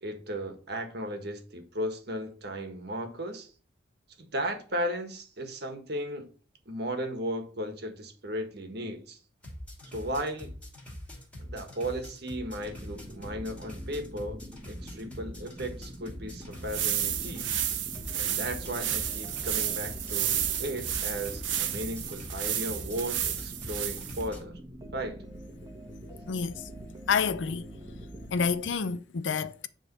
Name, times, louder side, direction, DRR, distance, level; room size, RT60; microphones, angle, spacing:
voice 1, 0.0-3.5 4.2-6.3 6.6-9.2 9.8-10.5 11.4-14.4 14.7-17.5 18.1-24.6 24.9-25.2, equal, 60° right, 1.6 m, -35 dB
sound 1, 9.4-24.4, left 1 dB, 5° left, 2.8 m, -44 dB
sound 2, 12.6-28.8, equal, 20° right, 1.3 m, -45 dB
sound 3, 16.5-24.3, right 10 dB, 85° right, 1.0 m, -32 dB
voice 2, 26.3-26.6 27.1-27.6 28.3-29.7, left 5 dB, 80° left, 0.6 m, -28 dB
10.0 x 3.6 x 5.4 m
head